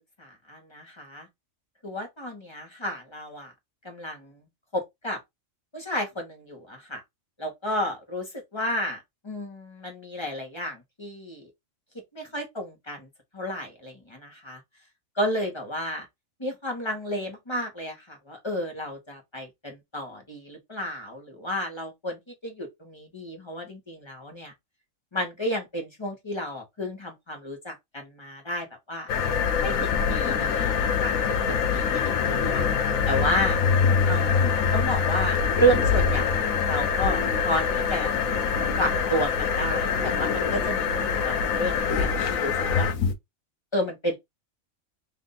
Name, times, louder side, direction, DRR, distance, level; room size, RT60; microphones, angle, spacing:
voice 1, 0.2-1.3 1.8-3.5 3.8-4.4 4.7-5.2 5.7-7.0 7.4-11.5 12.1-13.1 13.3-14.6 15.1-16.0 16.4-24.5 25.1-29.1 29.6-31.2 31.5-32.6 33.1-33.6 34.1-38.1 38.8-42.9 43.7-44.1, equal, 20° left, 1.1 m, -31 dB
sound 1, 29.1-43.1, left 6 dB, 85° left, 1.1 m, -24 dB
3.4 x 2.6 x 3.9 m
omnidirectional pair, 1.4 m